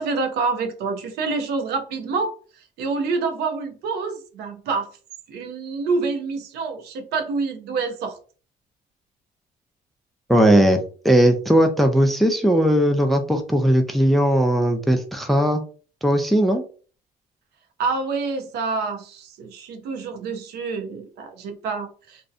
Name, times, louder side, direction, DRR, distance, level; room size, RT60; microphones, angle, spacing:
voice 1, 0.0-2.3 2.8-4.9 5.3-8.2 17.8-22.2, right 4 dB, 75° right, 0.5 m, -27 dB
voice 2, 10.3-15.6 16.0-16.6, equal, ahead, 0.3 m, -18 dB
2.6 x 2.1 x 2.4 m
cardioid pair, 110°, 17 cm